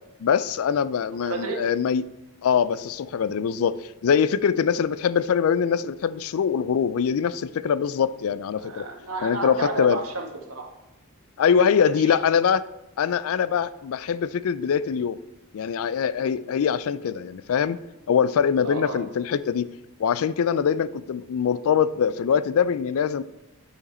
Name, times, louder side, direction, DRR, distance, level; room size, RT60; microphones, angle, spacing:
voice 1, 0.2-2.1 2.4-8.9 9.2-10.0 11.4-12.7 13.0-15.2 15.5-17.8 18.1-19.7 20.0-23.2, left 7 dB, 65° left, 16 dB, 0.4 m, -23 dB
voice 2, 1.1-1.6 8.6-10.7 11.9-12.2 16.2-16.3 18.6-19.0, right 2 dB, 70° right, 3 dB, 1.4 m, -32 dB
9.6 x 5.0 x 4.3 m, 1.0 s
head